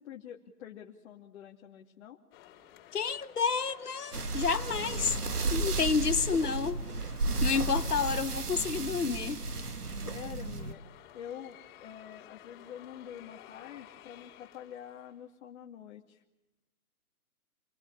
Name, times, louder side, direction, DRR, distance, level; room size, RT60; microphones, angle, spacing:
voice 1, 0.0-2.2 10.0-16.2, left 9 dB, 50° left, 2.7 m, -47 dB
sound 1, 2.3-15.2, left 11 dB, 30° left, 4.8 m, -54 dB
voice 2, 2.9-5.2 5.5-6.8 7.4-9.4, left 5 dB, 85° left, 1.7 m, -30 dB
sound 2, 4.1-10.7, right 3 dB, 90° right, 2.3 m, -33 dB
28.0 x 21.0 x 8.3 m
hypercardioid pair, 135°, 45 cm